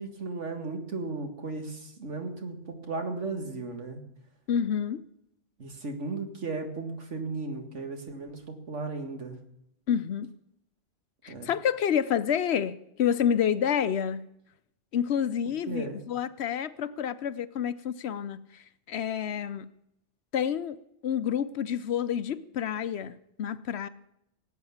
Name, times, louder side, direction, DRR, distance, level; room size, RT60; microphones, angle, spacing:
voice 1, 0.0-4.0 5.6-9.4 11.3-11.5 15.7-16.0, right 3 dB, 75° right, 2.2 m, -35 dB
voice 2, 4.5-5.0 9.9-10.3 11.2-14.3 14.9-19.7 20.3-20.8 21.0-23.9, left 8 dB, 65° left, 0.9 m, -29 dB
17.5 x 8.7 x 7.1 m
omnidirectional pair, 1.2 m